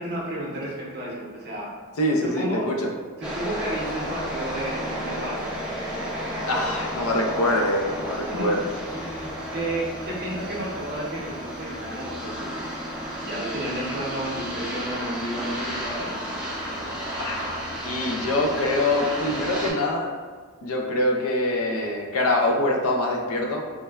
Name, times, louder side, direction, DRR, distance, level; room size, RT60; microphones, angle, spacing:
voice 1, 0.0-1.7 2.2-2.7 3.2-5.4 8.1-8.6 8.9-12.8 13.2-16.1, right 1 dB, 45° right, -4 dB, 0.7 m, -32 dB
voice 2, 2.0-2.9 6.5-8.6 17.2-17.4 17.8-20.1 20.6-23.6, left 1 dB, 65° left, 1 dB, 0.4 m, -24 dB
sound 1, 3.2-19.7, equal, 5° right, 0.4 m, -32 dB
3.1 x 2.1 x 2.3 m, 1.5 s
head